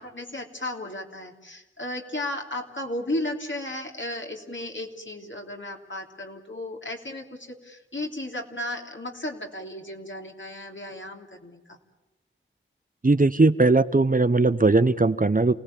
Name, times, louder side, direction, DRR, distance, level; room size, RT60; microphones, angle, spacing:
voice 1, 0.0-11.8, left 1 dB, 65° left, 1 dB, 3.2 m, -34 dB
voice 2, 13.0-15.5, right 3 dB, 40° right, 13 dB, 0.9 m, -19 dB
28.5 x 18.5 x 8.8 m, 1.0 s
wide cardioid pair, 45°, 21 cm